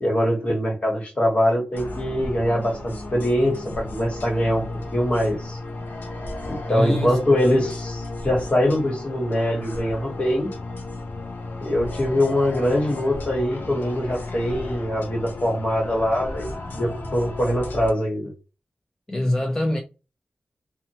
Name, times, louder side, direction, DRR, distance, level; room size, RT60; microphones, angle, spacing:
voice 1, 0.0-4.6 4.9-5.6 6.5-10.5 11.6-18.3, left 1 dB, 40° left, 1.2 m, -23 dB
sound 1, 1.7-17.9, left 2 dB, 90° left, 0.5 m, -34 dB
voice 2, 6.7-7.2 19.1-19.8, left 1 dB, 20° left, 0.5 m, -23 dB
2.8 x 2.2 x 2.8 m
wide cardioid pair, 80°, 3 cm